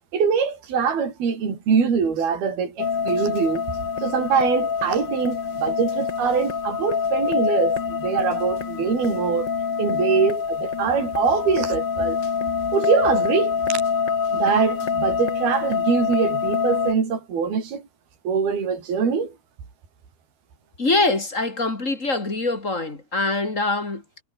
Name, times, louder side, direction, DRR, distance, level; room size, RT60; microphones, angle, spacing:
voice 1, 0.1-3.6 4.0-9.5 9.8-12.2 12.7-13.8 14.3-17.8 18.2-19.3, right 6 dB, 65° right, 6.7 m, -23 dB
sound 1, 2.8-16.9, left 6 dB, 35° left, 2.0 m, -25 dB
voice 2, 20.8-24.2, left 2 dB, 20° left, 3.2 m, -24 dB
omnidirectional pair, 4.7 m